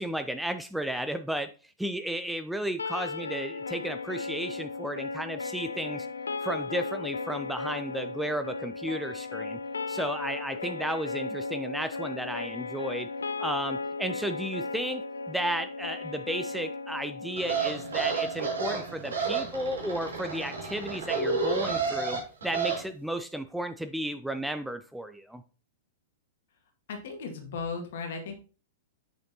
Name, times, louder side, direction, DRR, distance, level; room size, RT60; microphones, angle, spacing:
voice 1, 0.0-6.1 6.4-9.6 9.9-13.1 13.4-25.4, right 1 dB, ahead, 9 dB, 0.4 m, -33 dB
sound 1, 2.8-18.8, left 3 dB, 75° left, 0.3 m, -36 dB
sound 2, 17.4-22.8, right 5 dB, 70° right, 2.2 m, -30 dB
voice 2, 26.9-28.3, left 4 dB, 55° left, 4 dB, 1.8 m, -36 dB
6.4 x 6.3 x 2.8 m, 0.35 s
figure-of-eight pair, 100°, 0 cm